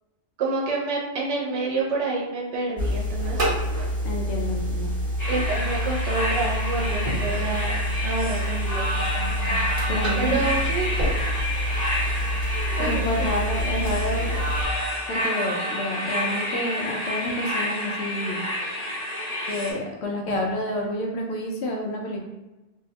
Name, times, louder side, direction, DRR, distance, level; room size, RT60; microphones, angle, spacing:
voice 1, 0.4-3.4 5.3-8.8 10.2-10.9 12.7-13.3, right 3 dB, 90° right, -3 dB, 0.9 m, -28 dB
sound 1, 2.8-14.6, equal, 35° right, 0.9 m, -27 dB
voice 2, 4.0-4.9 9.9-10.4 12.8-14.4 15.1-18.4 19.5-22.2, left 1 dB, 75° left, 0 dB, 0.8 m, -29 dB
sound 2, 5.2-19.7, left 1 dB, 40° left, 1.1 m, -29 dB
2.6 x 2.0 x 2.7 m, 1.0 s
omnidirectional pair, 1.2 m